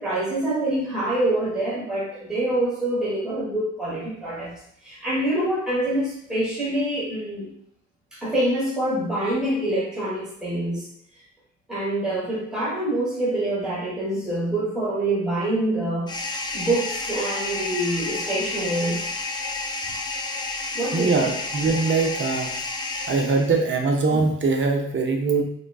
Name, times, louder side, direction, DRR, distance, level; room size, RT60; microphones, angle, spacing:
voice 1, 0.0-4.5 4.8-7.5 8.1-10.9 11.7-16.1 16.5-19.1 20.7-21.3, right 1 dB, ahead, -8 dB, 1.2 m, -25 dB
sound 1, 16.1-23.8, left 3 dB, 15° left, 0.3 m, -30 dB
voice 2, 20.9-22.5 23.1-25.4, right 4 dB, 40° right, 2 dB, 0.6 m, -22 dB
3.7 x 2.3 x 2.3 m, 0.70 s
cardioid pair, 90°, 30 cm